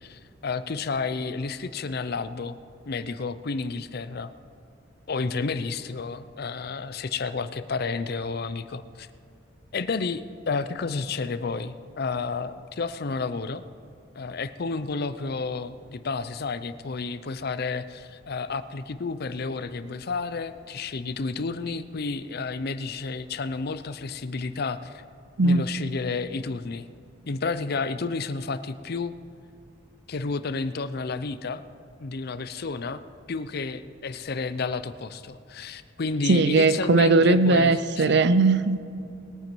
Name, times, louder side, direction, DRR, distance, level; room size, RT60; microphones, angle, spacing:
voice 1, 0.0-2.6 2.9-4.3 5.1-9.1 9.7-13.6 14.1-25.0 25.4-26.9 27.3-29.1 30.1-31.6 32.0-33.0 33.3-38.2, left 4 dB, 55° left, 0.6 m, -31 dB
voice 2, 36.3-38.8, right 3 dB, 65° right, 0.6 m, -19 dB
20.5 x 9.3 x 4.6 m
head